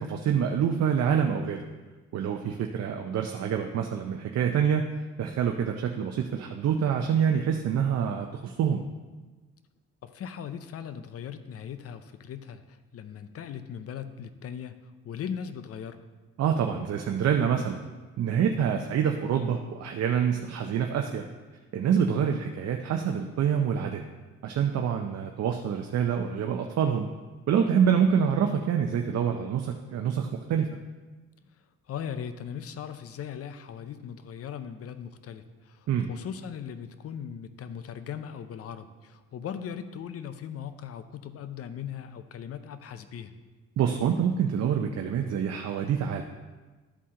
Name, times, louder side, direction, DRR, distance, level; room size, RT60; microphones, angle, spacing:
voice 1, 0.0-1.7 2.1-4.9 5.2-8.8 16.4-17.8 18.2-21.2 21.7-24.0 24.4-27.1 27.5-30.7 35.9-36.1 43.8-46.2, right 8 dB, 60° right, 4 dB, 0.6 m, -26 dB
voice 2, 10.0-16.0 22.0-22.4 31.9-43.3, left 8 dB, 50° left, 11 dB, 0.6 m, -39 dB
12.5 x 4.3 x 3.7 m, 1.3 s
cardioid pair, 90°, 30 cm